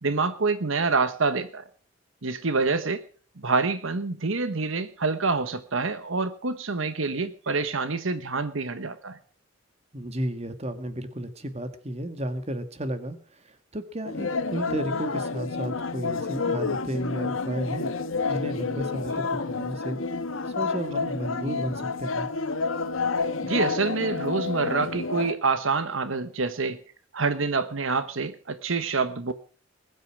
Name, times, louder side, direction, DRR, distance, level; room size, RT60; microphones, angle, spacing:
voice 1, 0.0-1.6 2.2-3.0 3.4-9.2 23.4-26.8 27.1-29.3, right 4 dB, 70° right, 12 dB, 1.1 m, -27 dB
voice 2, 9.9-17.9 18.2-20.0 20.5-22.3, right 1 dB, 30° right, 10 dB, 1.9 m, -33 dB
sound 1, 14.0-25.3, left 4 dB, 75° left, 1.1 m, -29 dB
21.0 x 9.4 x 6.1 m, 0.43 s
head